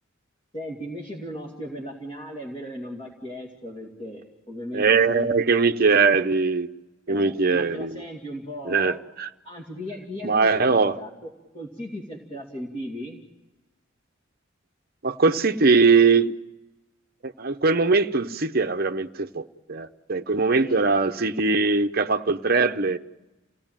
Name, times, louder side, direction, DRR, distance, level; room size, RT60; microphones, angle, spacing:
voice 1, 0.5-5.3 7.1-9.0 9.4-13.2 20.6-20.8, equal, 30° left, 2.5 m, -37 dB
voice 2, 4.7-6.7 7.1-8.0 8.6-9.3 10.2-11.0 15.0-16.3 17.2-23.0, right 4 dB, 45° right, 0.8 m, -21 dB
28.5 x 17.5 x 9.0 m
head